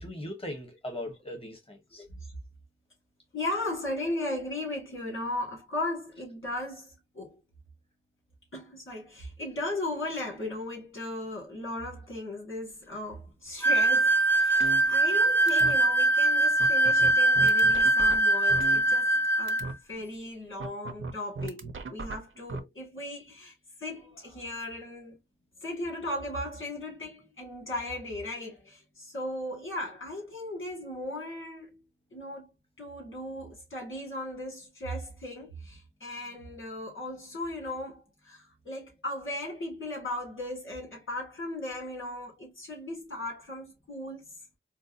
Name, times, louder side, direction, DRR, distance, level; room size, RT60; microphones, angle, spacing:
voice 1, 0.0-2.0, left 1 dB, 25° left, 1.4 m, -39 dB
voice 2, 2.0-2.3 3.3-7.4 8.5-23.5 23.8-25.2 25.6-31.9 32.1-32.5 32.8-44.3, left 1 dB, 80° left, 2.4 m, -37 dB
sound 1, 13.6-19.7, right 2 dB, 10° left, 0.6 m, -22 dB
sound 2, 14.6-15.2 15.5-15.7 16.2-16.3 16.6-19.2 19.5-19.7 20.6-22.6, right 3 dB, 85° right, 0.7 m, -37 dB
4.5 x 2.1 x 2.7 m
cardioid pair, 45°, 20 cm